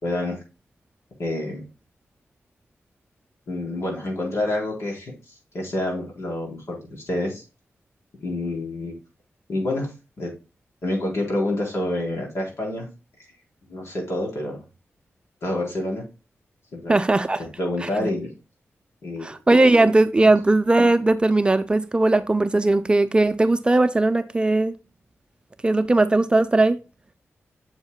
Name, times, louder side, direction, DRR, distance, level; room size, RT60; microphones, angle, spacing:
voice 1, 0.0-0.4 1.2-1.6 3.5-5.1 5.5-6.8 7.1-7.4 8.2-9.0 9.5-9.9 10.2-10.3 10.8-12.9 13.7-14.6 15.4-16.0 16.7-17.0 17.4-18.3 19.0-19.3, left 1 dB, 70° left, 4.0 m, -27 dB
voice 2, 16.9-17.4 18.0-18.1 19.2-24.7 25.6-26.8, right 2 dB, 20° right, 0.5 m, -18 dB
7.7 x 7.3 x 2.2 m
wide cardioid pair, 130°, 5 cm